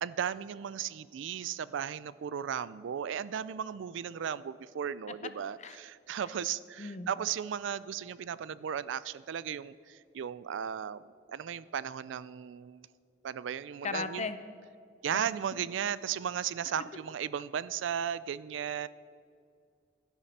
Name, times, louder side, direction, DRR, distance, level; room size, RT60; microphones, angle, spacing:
voice 1, 0.0-11.0 11.3-12.9 13.2-14.3 15.0-18.9, right 8 dB, 70° right, 18 dB, 0.3 m, -35 dB
voice 2, 13.8-14.4 15.1-15.2, left 4 dB, 35° left, 11 dB, 0.6 m, -36 dB
12.5 x 11.0 x 4.2 m, 2.3 s
head